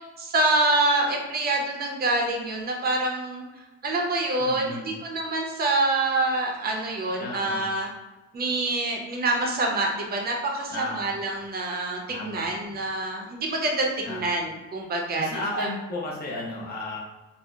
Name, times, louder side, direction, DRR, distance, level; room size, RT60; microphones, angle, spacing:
voice 1, 0.2-3.4 3.8-7.9 8.3-15.3 15.5-15.7, right 2 dB, 30° right, 0 dB, 0.6 m, -26 dB
voice 2, 4.4-4.9 7.2-7.6 10.7-11.2 12.1-12.5 14.0-14.3 15.2-17.0, left 2 dB, 30° left, -5 dB, 0.7 m, -34 dB
2.7 x 2.0 x 3.4 m, 1.1 s
cardioid pair, 145°, 31 cm